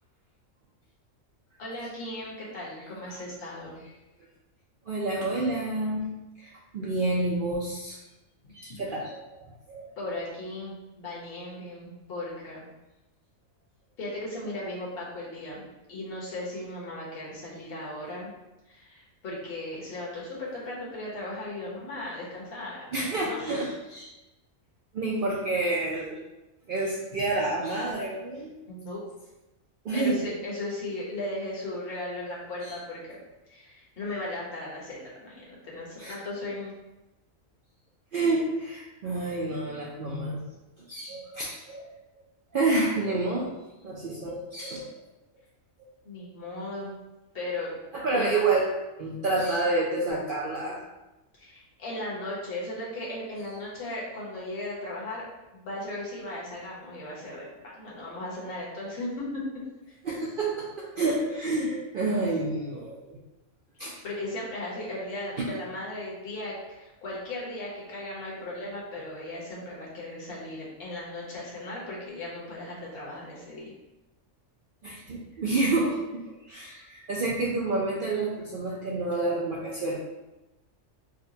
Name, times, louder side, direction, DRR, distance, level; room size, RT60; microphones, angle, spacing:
voice 1, 1.6-3.8 8.9-9.0 10.0-12.7 14.0-15.6 15.9-18.3 18.7-23.4 28.7-29.0 29.9-33.2 33.5-36.7 46.0-46.9 47.3-47.7 48.1-48.5 51.4-55.2 55.6-59.4 59.9-60.0 64.0-73.7, left 1 dB, 50° left, -6 dB, 1.1 m, -37 dB
voice 2, 4.9-8.0 8.5-9.9 22.9-24.1 24.9-26.2 26.7-28.5 29.8-30.3 32.6-32.8 36.0-36.1 38.1-40.5 40.8-41.9 42.5-43.5 43.8-45.0 47.9-48.7 49.0-50.8 60.0-63.2 63.8-63.9 65.4-65.5 74.8-76.0 76.5-80.0, right 2 dB, 65° right, -4 dB, 0.5 m, -29 dB
4.9 x 2.1 x 2.7 m, 1.0 s
omnidirectional pair, 1.4 m